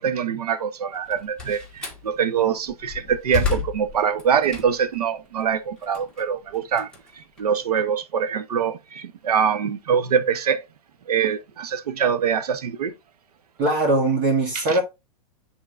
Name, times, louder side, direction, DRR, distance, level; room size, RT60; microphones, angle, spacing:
voice 1, 0.0-6.9 7.4-10.6 11.1-12.9 14.5-14.8, right 7 dB, 80° right, 0.9 m, -24 dB
Slam, 0.9-2.1 2.6-5.0 5.4-7.8, left 5 dB, 5° left, 1.7 m, -31 dB
voice 2, 13.6-14.8, right 2 dB, 40° right, 1.8 m, -20 dB
10.5 x 3.8 x 2.4 m
hypercardioid pair, 135°, 19 cm